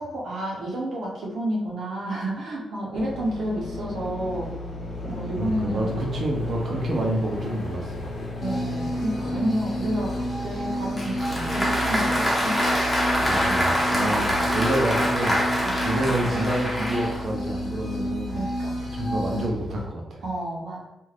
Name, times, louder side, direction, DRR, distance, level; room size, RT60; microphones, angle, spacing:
voice 1, 0.0-4.5 5.0-6.0 8.4-10.2 10.4-12.7 14.0-14.6 15.6-16.3 18.3-18.8 20.2-20.8, right 1 dB, 80° right, -4 dB, 0.8 m, -30 dB
sound 1, 2.9-19.8, left 1 dB, 90° left, 0.8 m, -35 dB
voice 2, 5.4-8.1 13.2-18.4 18.9-20.2, right 1 dB, 50° right, -1 dB, 0.6 m, -28 dB
sound 2, 8.4-19.5, equal, 50° left, 0.7 m, -31 dB
Applause, 11.0-17.3, equal, 5° left, 0.6 m, -25 dB
2.5 x 2.4 x 3.2 m, 0.94 s
wide cardioid pair, 150°, 0 cm